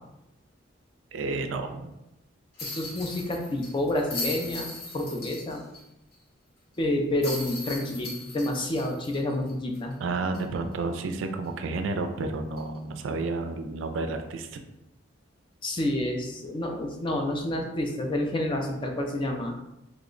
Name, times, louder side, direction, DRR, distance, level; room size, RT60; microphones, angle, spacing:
voice 1, 1.1-1.9 10.0-14.6, right 3 dB, 70° right, 7 dB, 0.4 m, -31 dB
sound 1, 2.6-5.8 6.1-6.2 7.2-9.9 10.3-10.4 12.6-12.8, left 2 dB, 50° left, 0.9 m, -38 dB
voice 2, 2.6-5.6 6.8-9.9 15.6-19.5, left 1 dB, 25° left, 2 dB, 0.4 m, -29 dB
3.1 x 2.1 x 3.7 m, 0.90 s
head